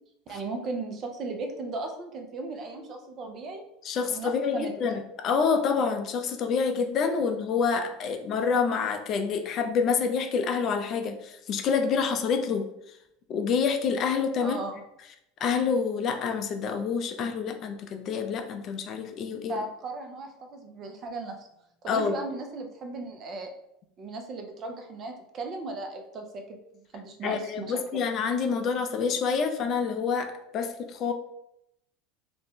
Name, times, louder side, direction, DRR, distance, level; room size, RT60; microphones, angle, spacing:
voice 1, 0.3-3.6 4.1-4.7 14.4-14.8 19.5-21.5 21.8-23.5 24.0-27.7, right 3 dB, 45° right, 4 dB, 0.5 m, -36 dB
voice 2, 3.8-12.7 13.3-14.6 15.4-19.6 21.9-22.2 27.2-31.1, left 5 dB, 45° left, 6 dB, 0.4 m, -27 dB
2.5 x 2.1 x 3.5 m, 0.80 s
hypercardioid pair, 95°, 0 cm